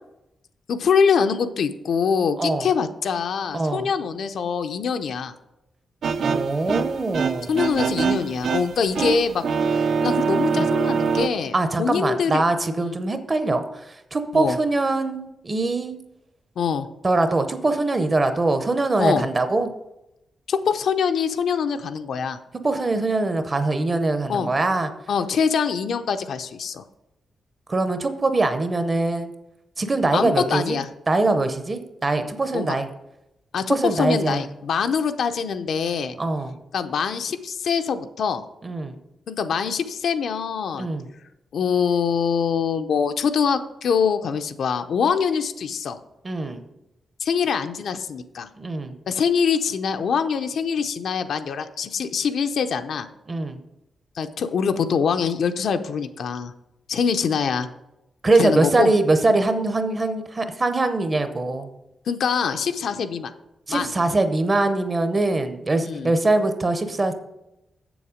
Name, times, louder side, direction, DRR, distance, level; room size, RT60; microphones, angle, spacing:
voice 1, 0.7-5.3 7.5-9.4 9.7-12.4 12.8-13.0 14.3-14.6 16.6-16.9 19.0-19.3 20.5-22.4 24.3-24.5 25.1-26.8 30.1-30.9 32.5-32.8 33.5-36.2 36.7-38.4 39.3-40.9 41.5-46.0 47.2-48.5 49.1-53.1 54.2-56.5 56.9-57.7 58.4-58.9 62.1-63.3 63.7-63.9 65.8-66.1, left 6 dB, 65° left, 8 dB, 0.5 m, -24 dB
voice 2, 3.5-3.9 6.2-7.5 10.5-10.6 11.5-16.0 17.0-19.7 22.6-24.9 27.7-29.3 29.8-30.8 31.1-32.9 33.7-34.4 36.2-36.6 38.6-39.0 40.8-41.1 46.2-46.6 48.6-49.0 53.3-53.6 58.2-61.7 63.7-67.1, right 2 dB, 20° right, 8 dB, 0.6 m, -22 dB
sound 1, 6.0-11.3, right 5 dB, 65° right, 0.6 m, -24 dB
7.8 x 7.0 x 5.0 m, 0.90 s
wide cardioid pair, 175°, 0 cm